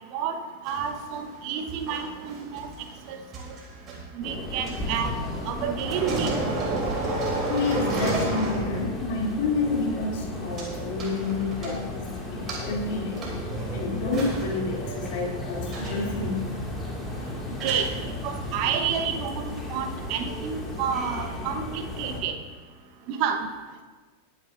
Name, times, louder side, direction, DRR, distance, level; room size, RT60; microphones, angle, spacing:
voice 1, 0.6-2.7 3.1-3.2 4.1-5.1 5.5-6.3 17.6-17.9 18.2-22.4 23.1-23.5, right 7 dB, 45° right, 6 dB, 1.2 m, -29 dB
sound 1, 0.7-5.5 5.8-9.2 9.4-9.5 10.6-10.7 11.0-12.0 12.5-18.9, right 2 dB, 30° right, 3.3 m, -33 dB
sound 2, 4.2-22.2, left 1 dB, 15° left, 2.2 m, -35 dB
voice 2, 7.5-13.2 13.7-16.5, left 3 dB, 50° left, -2 dB, 3.0 m, -29 dB
21.0 x 9.6 x 2.6 m, 1.3 s
figure-of-eight pair, 90°, 0 cm